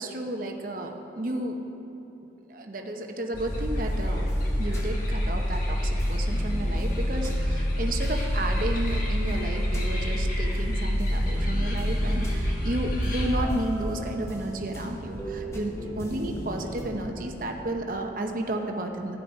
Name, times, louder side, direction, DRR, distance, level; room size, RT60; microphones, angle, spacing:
voice 1, 0.0-1.6 2.5-4.3 4.6-19.2, right 1 dB, 45° right, 3 dB, 0.8 m, -32 dB
sound 1, 3.3-13.4, equal, 45° left, 1.7 m, -27 dB
sound 2, 3.3-5.6 6.0-10.6 11.0-16.8, equal, 15° left, 1.0 m, -41 dB
sound 3, 11.9-18.2, equal, 70° left, 3.2 m, -43 dB
12.5 x 9.3 x 5.3 m, 3.0 s
head